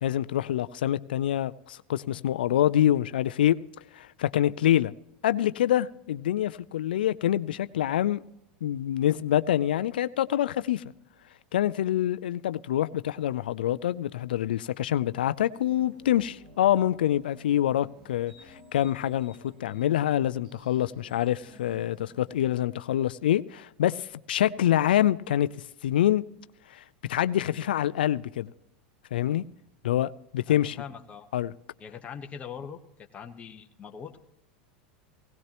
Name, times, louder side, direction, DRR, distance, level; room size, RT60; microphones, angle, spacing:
voice 1, 0.0-3.6 3.9-4.9 5.2-8.2 8.6-10.8 11.5-25.5 25.8-26.2 26.7-26.8 27.1-28.5 29.1-29.4 29.8-30.8 31.3-31.5, left 12 dB, 85° left, 0.4 m, -26 dB
sound 1, 15.5-22.5, equal, 70° right, 4.4 m, -53 dB
voice 2, 30.5-31.3 31.8-32.8 33.1-34.2, left 7 dB, 30° left, 1.2 m, -41 dB
17.5 x 16.5 x 3.0 m
hypercardioid pair, 105°, 5 cm